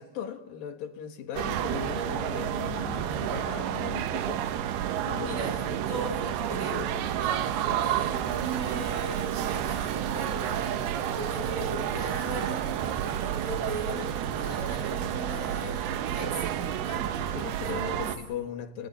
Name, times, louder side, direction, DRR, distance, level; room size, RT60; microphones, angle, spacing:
voice 1, 0.0-4.4 5.0-5.4 7.7-7.8 9.3-9.6 17.2-18.9, left 9 dB, 70° left, 3.1 m, -38 dB
Chiang Rai Bus Station, 1.4-18.2, right 10 dB, 90° right, 3.1 m, -30 dB
voice 2, 5.2-6.9 7.2-18.0, right 1 dB, 30° right, 7.7 m, -38 dB
sound 1, 8.2-18.1, right 3 dB, 65° right, 7.9 m, -47 dB
30.0 x 29.5 x 4.3 m
omnidirectional pair, 4.4 m